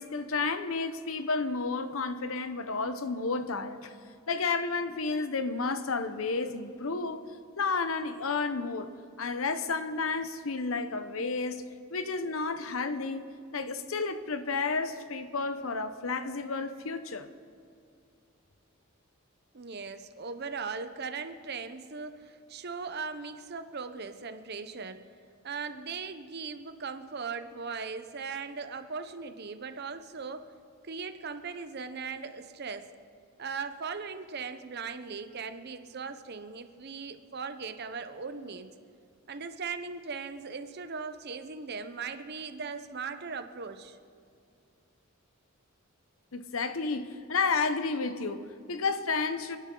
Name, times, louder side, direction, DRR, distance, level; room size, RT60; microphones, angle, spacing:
voice 1, 0.0-3.9 4.3-7.2 7.6-8.9 9.2-11.6 11.9-13.3 13.5-17.3 46.3-49.6, left 4 dB, 80° left, 0.9 m, -31 dB
voice 2, 19.5-25.1 25.4-30.5 30.8-32.9 33.4-38.7 39.3-44.0, right 5 dB, 50° right, 0.8 m, -39 dB
29.0 x 11.0 x 3.9 m
head